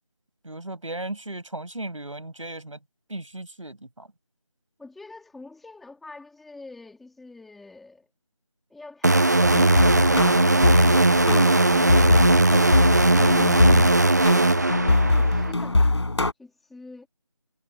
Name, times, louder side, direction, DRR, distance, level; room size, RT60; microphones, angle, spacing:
voice 1, 0.4-2.8 3.1-4.1, right 2 dB, 80° right, 5.9 m, -36 dB
voice 2, 4.8-8.1 12.9-16.1 16.4-17.1, left 3 dB, ahead, 2.2 m, -46 dB
sound 1, 9.0-15.5, right 2 dB, 35° right, 0.7 m, -19 dB
sound 2, 9.4-16.3, left 2 dB, 60° left, 4.0 m, -22 dB
figure-of-eight pair, 175°, 16 cm